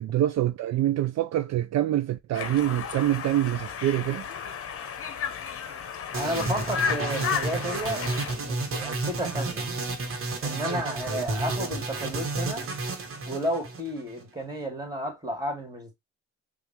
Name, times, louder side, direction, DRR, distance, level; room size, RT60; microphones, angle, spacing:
voice 1, 0.0-4.3, right 13 dB, 60° right, 0.5 m, -25 dB
Conversation, 2.3-8.3, left 7 dB, 50° left, 0.9 m, -33 dB
voice 2, 6.1-9.7 10.4-12.6 13.3-15.9, equal, 10° right, 2.4 m, -32 dB
sound 1, 6.1-14.2, right 3 dB, 45° right, 1.3 m, -31 dB
5.7 x 2.6 x 2.8 m
cardioid pair, 90°, 30 cm